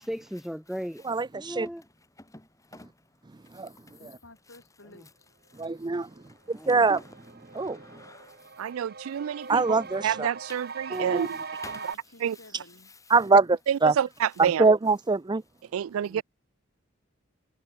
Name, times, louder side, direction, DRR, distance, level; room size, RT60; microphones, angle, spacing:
voice 1, 0.0-1.0 1.4-1.9 6.6-6.8 16.0-16.2, equal, ahead, 1.1 m, -36 dB
voice 2, 1.1-1.7 3.6-3.7 5.6-6.1 6.7-7.0 7.5-7.8 9.5-10.3 10.9-11.3 13.1-13.4 13.8-13.9 14.6-15.4, right 4 dB, 20° right, 0.5 m, -23 dB
voice 3, 2.2-2.9 6.8-7.0 7.5-8.4 11.6-11.8, left 2 dB, 15° left, 2.8 m, -48 dB
voice 4, 4.0-5.3 11.6-12.9, left 2 dB, 65° left, 6.2 m, -52 dB
sound 1, 6.2-6.3 6.6-11.9, right 4 dB, 50° right, 5.8 m, -41 dB
voice 5, 8.6-9.6 10.0-11.3 12.2-12.4 13.7-14.7 15.7-16.2, right 9 dB, 90° right, 0.3 m, -28 dB
head